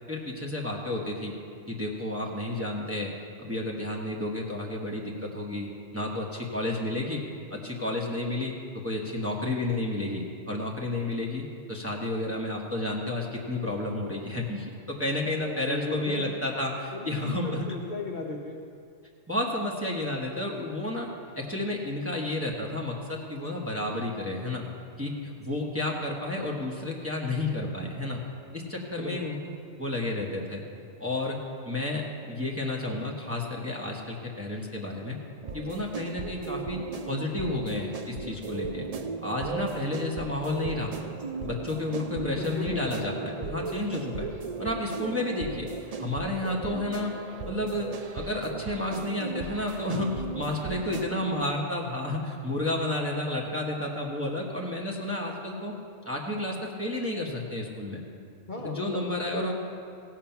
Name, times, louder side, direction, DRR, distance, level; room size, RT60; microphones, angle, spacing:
voice 1, 0.1-1.3 1.7-3.1 3.4-7.2 7.5-8.5 8.8-17.7 19.3-21.1 21.3-24.7 25.0-28.2 28.5-29.4 29.8-30.6 31.0-31.4 31.6-35.2 35.5-36.8 37.1-38.9 39.2-40.9 41.4-44.3 44.6-45.7 46.0-47.1 47.5-55.7 56.0-58.0 58.6-59.5, left 2 dB, 10° right, -2 dB, 1.3 m, -31 dB
voice 2, 15.4-16.2 16.9-18.6 29.0-29.2 42.1-43.1 43.4-43.5 58.5-59.5, left 2 dB, 40° left, -1 dB, 1.0 m, -36 dB
sound 1, 35.4-51.4, right 4 dB, 50° right, 0.4 m, -37 dB
16.5 x 7.4 x 5.9 m, 2.3 s
omnidirectional pair, 1.4 m